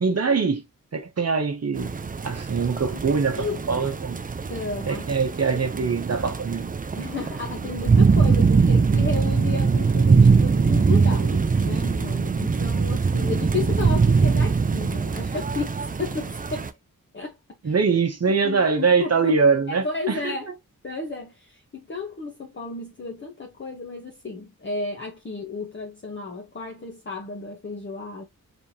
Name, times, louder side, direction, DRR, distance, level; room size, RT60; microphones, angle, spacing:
voice 1, 0.0-0.6 0.9-1.9 2.2-4.2 4.9-6.7 17.6-20.3, right 5 dB, 50° right, 0.8 m, -23 dB
sound 1, 1.8-16.7, right 5 dB, 25° right, 0.4 m, -22 dB
voice 2, 4.5-5.1 5.4-5.7 7.0-16.7 17.1-17.4 17.6-17.8 18.3-19.4 19.7-20.5 20.8-28.2, left 4 dB, 35° left, 0.9 m, -33 dB
4.4 x 3.4 x 2.7 m
wide cardioid pair, 95°, 33 cm